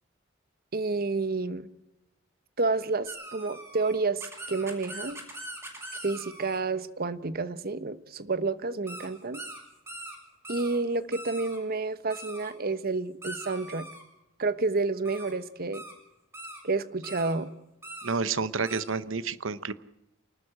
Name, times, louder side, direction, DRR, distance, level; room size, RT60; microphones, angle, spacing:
voice 1, 0.7-1.7 2.6-5.2 6.0-9.4 10.5-13.9 14.4-15.8 16.6-17.5, right 3 dB, 50° right, 13 dB, 1.1 m, -30 dB
sound 1, 3.1-6.6 8.9-9.1 9.3-9.6 9.9-10.2 10.4-10.8 11.1-11.6 12.1-12.5 13.2-14.0 15.0-15.3 15.7-15.9 16.3-16.6 17.0-17.3 17.8-18.1 18.7-18.8, right 1 dB, 15° right, 6.7 m, -42 dB
voice 2, 18.0-19.7, right 4 dB, 75° right, 15 dB, 0.9 m, -29 dB
28.0 x 13.0 x 8.8 m, 0.95 s
head